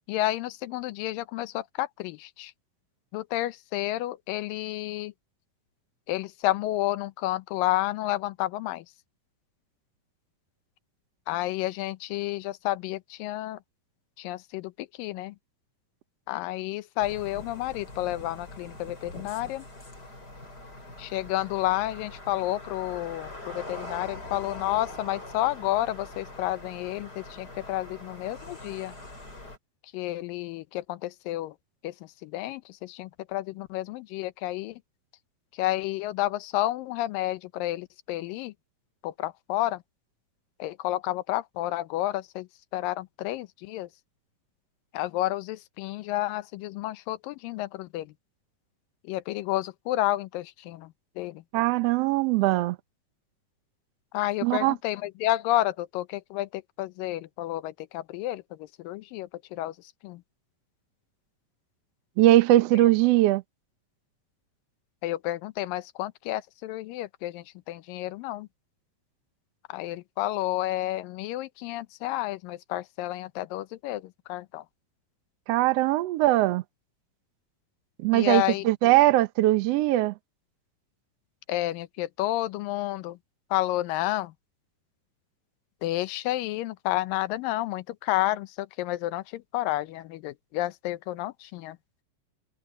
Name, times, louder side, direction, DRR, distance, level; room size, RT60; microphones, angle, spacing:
voice 1, 0.1-2.5 3.1-5.1 6.1-8.8 11.3-13.6 14.2-15.3 16.3-19.7 21.0-28.9 29.9-31.6 31.8-31.9 32.2-34.8 35.6-38.5 39.0-39.8 40.6-42.5 42.7-43.9 44.9-48.1 49.1-51.4 54.1-59.7 60.0-60.2 65.0-68.5 69.7-74.6 78.1-78.6 81.5-83.2 83.5-84.3 85.8-91.8, left 16 dB, 85° left, 2.5 m, -30 dB
sound 1, 17.0-29.6, left 2 dB, 25° left, 6.0 m, -43 dB
voice 2, 51.5-52.8 54.4-54.7 62.2-63.4 75.5-76.6 78.0-80.1, right 16 dB, 85° right, 1.4 m, -21 dB
omnidirectional pair, 3.9 m